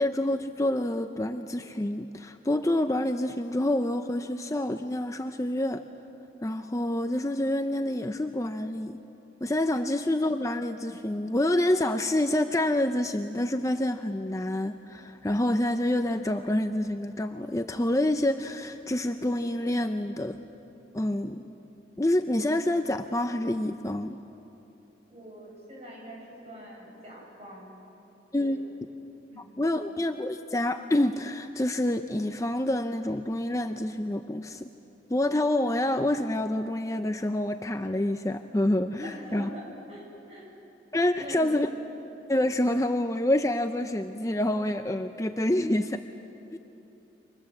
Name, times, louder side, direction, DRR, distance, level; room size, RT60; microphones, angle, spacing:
voice 1, 0.0-5.8 6.4-9.0 9.4-20.4 20.9-21.6 22.0-24.2 28.3-28.6 29.6-34.7 35.1-39.5 40.9-41.7 42.3-46.0 46.5-46.6, left 1 dB, 20° left, 7 dB, 0.6 m, -27 dB
voice 2, 25.1-27.7 28.4-28.6 29.3-29.5 39.0-40.5 41.2-41.5, equal, 35° right, -2 dB, 8.0 m, -44 dB
30.0 x 25.0 x 7.5 m, 3.0 s
head